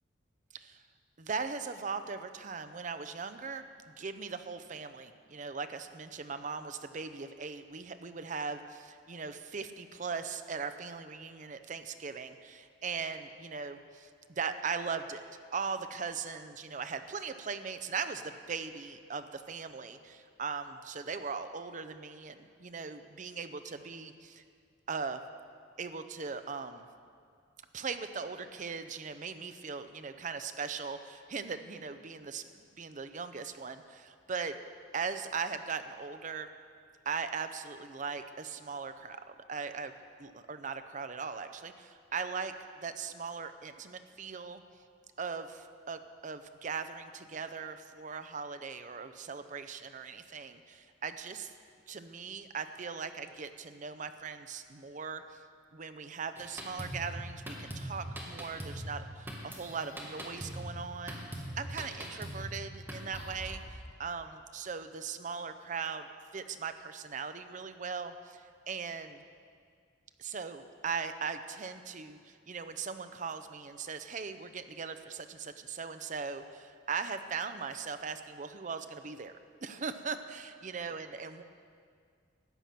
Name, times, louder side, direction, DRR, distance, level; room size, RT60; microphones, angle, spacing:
voice 1, 1.2-3.6 4.0-15.2 15.5-24.4 24.9-25.2 25.8-26.9 27.7-34.6 34.9-36.5 37.1-39.9 40.2-44.6 45.2-51.5 51.9-55.4 55.7-66.1 66.3-69.2 70.2-79.3 79.6-81.4, right 5 dB, 40° right, 9 dB, 0.6 m, -39 dB
Drum kit, 56.4-63.6, equal, 10° right, 1.6 m, -42 dB
13.5 x 8.8 x 5.8 m, 2.1 s
head